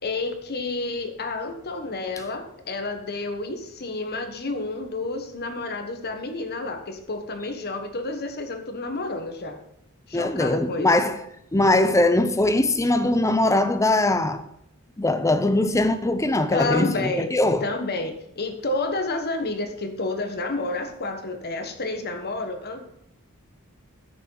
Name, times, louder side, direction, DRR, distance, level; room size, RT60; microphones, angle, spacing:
voice 1, 0.0-9.6 10.1-11.2 16.5-17.3 17.6-22.9, left 2 dB, 45° left, 1.2 m, -30 dB
voice 2, 10.1-11.2 11.5-14.4 15.0-17.6, left 2 dB, 15° left, 0.6 m, -21 dB
14.0 x 6.5 x 3.9 m
head